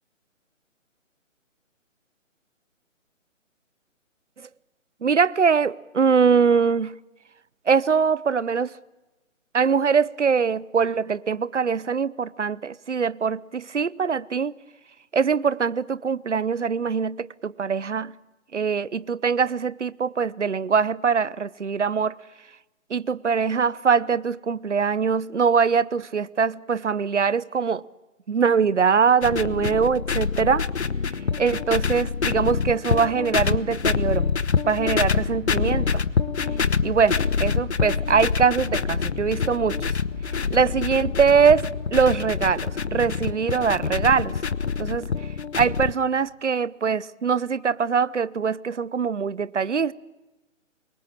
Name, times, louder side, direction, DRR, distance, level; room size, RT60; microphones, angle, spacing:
voice 1, 5.0-7.0 7.7-8.7 9.5-14.5 15.1-18.1 18.5-22.2 22.9-27.8 28.3-30.6 31.4-34.3 34.7-36.0 36.8-39.9 40.5-44.4 44.8-45.1 45.6-49.9, right 6 dB, 65° right, 0.9 m, -22 dB
sound 1, 29.2-45.9, left 5 dB, 55° left, 1.1 m, -26 dB
sound 2, 34.0-42.0, left 4 dB, 15° left, 0.7 m, -35 dB
27.0 x 23.0 x 7.3 m
figure-of-eight pair, 140°, 39 cm